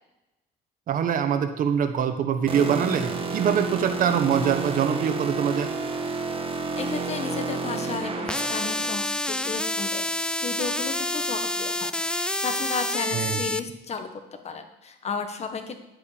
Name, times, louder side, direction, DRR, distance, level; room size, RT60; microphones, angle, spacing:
voice 1, 0.9-5.7 13.1-13.4, right 8 dB, 55° right, 7 dB, 1.1 m, -24 dB
sound 1, 2.5-9.0, right 4 dB, 35° right, 1.5 m, -30 dB
voice 2, 6.8-15.8, left 5 dB, 40° left, 6 dB, 1.5 m, -34 dB
sound 2, 8.3-13.6, left 1 dB, 5° left, 0.4 m, -28 dB
10.0 x 8.3 x 5.1 m, 0.97 s
cardioid pair, 110°, 17 cm